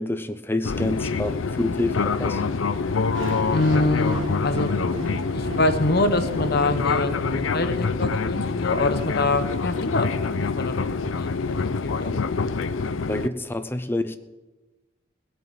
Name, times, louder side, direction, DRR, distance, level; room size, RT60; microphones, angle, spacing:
voice 1, 0.0-2.4 13.1-14.2, left 1 dB, 10° left, 10 dB, 0.6 m, -27 dB
Fixed-wing aircraft airplane, 0.6-13.3, left 4 dB, 85° left, 0.6 m, -26 dB
sound 1, 1.9-7.2 7.7-7.9, equal, 45° right, 2.3 m, -48 dB
sound 2, 3.1-9.2, right 1 dB, 90° right, 1.7 m, -36 dB
voice 2, 3.5-4.7 5.3-12.1, left 2 dB, 55° left, 9 dB, 1.0 m, -25 dB
17.5 x 6.2 x 8.9 m, 1.2 s
head